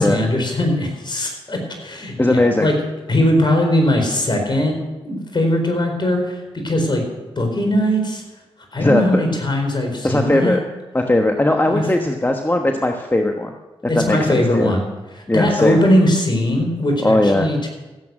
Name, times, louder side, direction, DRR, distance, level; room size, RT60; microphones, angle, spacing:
voice 1, 0.0-2.8 3.1-4.8 5.0-7.0 7.4-8.2 8.7-10.6 11.6-11.9 13.9-14.9 15.1-17.7, left 1 dB, 45° left, 3 dB, 4.5 m, -20 dB
voice 2, 2.2-2.7 8.8-9.2 10.0-10.6 10.9-13.5 14.0-14.7 15.3-15.8 17.0-17.5, left 1 dB, 20° left, 4 dB, 1.2 m, -18 dB
15.0 x 8.5 x 6.3 m, 1.1 s
supercardioid pair, 45°, 11 cm